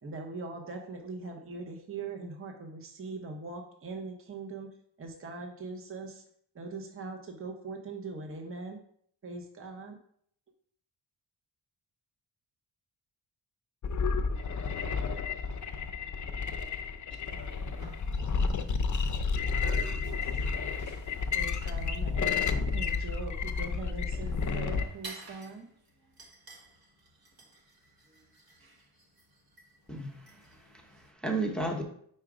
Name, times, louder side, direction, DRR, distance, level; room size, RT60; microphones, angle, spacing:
voice 1, 0.0-6.2 6.5-8.8 9.2-10.0 21.3-25.7, right 3 dB, 30° right, 3 dB, 0.7 m, -41 dB
sound 1, 13.8-24.9, left 5 dB, 40° left, 0.5 m, -31 dB
voice 2, 15.1-16.4 16.9-17.7 18.3-18.5 18.9-19.0 19.4-20.3, equal, 80° right, -1 dB, 1.9 m, -54 dB
sound 2, 17.2-31.1, right 1 dB, 50° right, 1.4 m, -54 dB
voice 3, 29.9-31.8, right 2 dB, ahead, 3 dB, 0.8 m, -34 dB
4.7 x 4.4 x 4.9 m, 0.65 s
wide cardioid pair, 100°, 45 cm